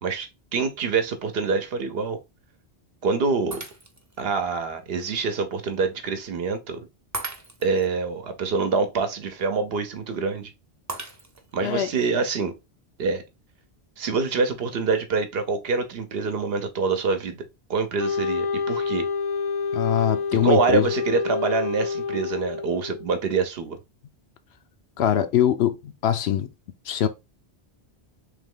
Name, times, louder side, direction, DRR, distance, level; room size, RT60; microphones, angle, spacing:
voice 1, 0.0-2.2 3.0-3.6 4.2-6.9 7.6-10.5 11.5-12.6 13.0-13.2 14.0-17.4 17.7-19.0 20.4-23.8, right 4 dB, 65° right, 0.9 m, -25 dB
Shatter, 3.5-4.2 4.8-4.9 7.1-7.9 10.9-11.6, right 2 dB, 20° right, 0.5 m, -36 dB
Wind instrument woodwind instrument, 18.0-23.1, left 5 dB, 45° left, 0.5 m, -28 dB
voice 2, 19.7-20.8 25.0-26.5 26.9-27.1, left 10 dB, 75° left, 0.8 m, -22 dB
3.4 x 3.0 x 3.6 m
omnidirectional pair, 1.1 m